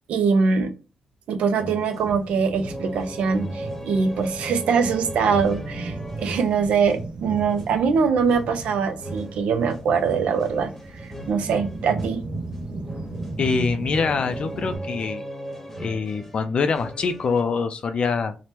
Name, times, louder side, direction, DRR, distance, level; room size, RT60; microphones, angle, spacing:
voice 1, 0.1-0.7 1.3-12.2, right 5 dB, 85° right, 0.4 m, -23 dB
sound 1, 1.6-17.4, right 1 dB, 10° left, 1.0 m, -38 dB
sound 2, 2.0-14.8, right 2 dB, 50° right, 0.8 m, -36 dB
voice 2, 13.4-15.2 15.8-18.4, left 5 dB, 55° left, 0.3 m, -24 dB
2.8 x 2.0 x 3.2 m
cardioid pair, 70°, 2 cm